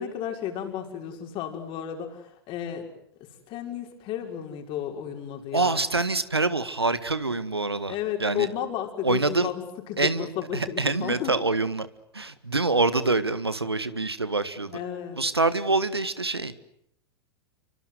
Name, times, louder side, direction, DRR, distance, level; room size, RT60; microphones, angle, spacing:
voice 1, 0.0-2.9 3.2-5.8 7.9-11.3 14.6-15.2, left 10 dB, 40° left, 3 dB, 6.2 m, -33 dB
voice 2, 5.5-8.5 9.0-9.5 10.0-10.3 10.5-11.9 12.1-14.7 15.2-16.5, right 3 dB, 90° right, 14 dB, 1.7 m, -25 dB
29.5 x 24.0 x 8.0 m, 0.74 s
figure-of-eight pair, 90°, 13 cm